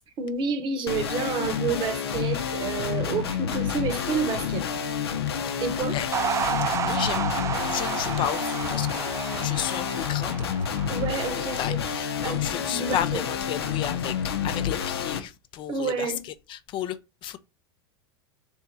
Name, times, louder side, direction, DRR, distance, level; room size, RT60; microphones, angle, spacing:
voice 1, 0.2-4.7 5.6-6.0 10.9-11.8 12.2-13.2 15.7-16.2, right 5 dB, 40° right, 1.0 m, -29 dB
sound 1, 0.9-15.2, left 8 dB, 85° left, 0.7 m, -29 dB
sound 2, 6.1-12.6, right 7 dB, 25° right, 0.4 m, -31 dB
voice 2, 6.8-7.3 7.5-9.1 9.4-10.5 11.4-14.2 14.4-16.1 16.5-17.4, left 11 dB, 40° left, 0.5 m, -33 dB
3.4 x 2.9 x 4.7 m
hypercardioid pair, 100°, 13 cm